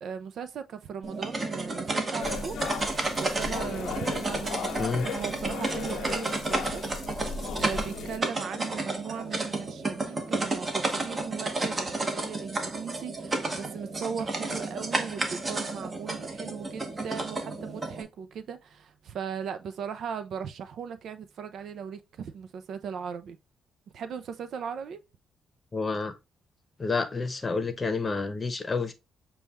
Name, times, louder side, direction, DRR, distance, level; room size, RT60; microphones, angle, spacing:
voice 1, 0.0-6.8 7.6-23.4 23.9-25.0, right 7 dB, 70° right, 0.5 m, -38 dB
sound 1, 1.0-18.0, right 2 dB, 30° right, 1.0 m, -32 dB
sound 2, 2.2-8.2, left 7 dB, 75° left, 0.5 m, -37 dB
voice 2, 25.7-26.1 26.8-28.9, left 4 dB, 30° left, 0.8 m, -29 dB
6.8 x 2.3 x 3.0 m
cardioid pair, 90°, 0 cm